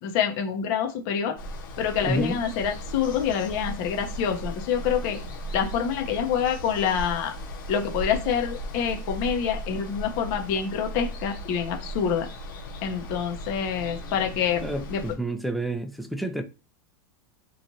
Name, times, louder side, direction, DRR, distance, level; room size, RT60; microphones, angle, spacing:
voice 1, 0.0-1.4 1.8-5.2 5.5-7.3 7.7-12.3 12.8-14.6 14.9-15.0, left 7 dB, 55° left, 0.8 m, -26 dB
Water, 1.4-15.1, equal, 85° left, 1.6 m, -37 dB
voice 2, 2.0-2.4 14.6-16.4, right 1 dB, ahead, 0.4 m, -29 dB
3.0 x 2.4 x 2.7 m
hypercardioid pair, 120°, 11 cm